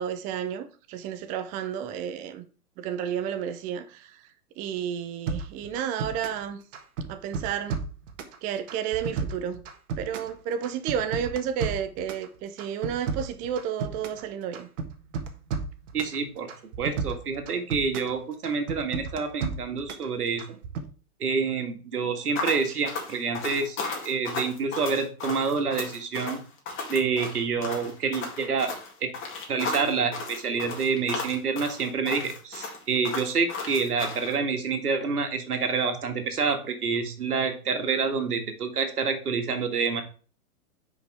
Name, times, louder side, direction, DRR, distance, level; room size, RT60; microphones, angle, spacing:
voice 1, 0.0-2.4 2.8-4.1 4.6-6.6 7.1-7.8 8.4-9.6 10.0-14.7, right 8 dB, 20° right, 0.4 m, -31 dB
sound 1, 5.3-6.4 6.7-8.4 8.7-10.3 10.6-12.3 12.6-14.2 14.5-16.2 16.5-18.1 18.4-20.1 20.4-20.9, right 5 dB, 55° right, 1.6 m, -33 dB
voice 2, 15.9-16.5 16.8-20.6 21.2-23.8 24.0-26.4 26.9-28.7 29.0-29.1 29.5-40.0, right 5 dB, 85° right, 1.9 m, -27 dB
sound 2, 22.4-34.3, left 4 dB, 25° left, 2.4 m, -35 dB
9.8 x 5.2 x 3.4 m
hypercardioid pair, 120°, 45 cm